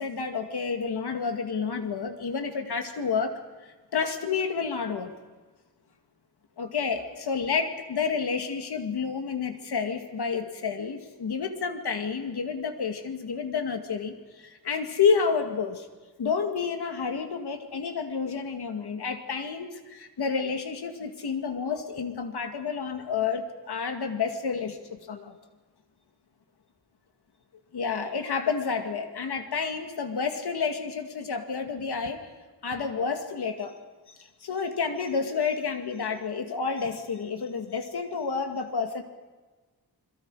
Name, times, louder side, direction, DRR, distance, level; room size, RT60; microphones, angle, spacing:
voice 1, 0.0-3.3 3.6-5.1 6.6-15.9 16.2-25.4 27.7-32.3 32.6-33.7 34.4-39.0, left 5 dB, 80° left, 5 dB, 2.1 m, -30 dB
29.0 x 22.0 x 4.9 m, 1.3 s
wide cardioid pair, 155°, 38 cm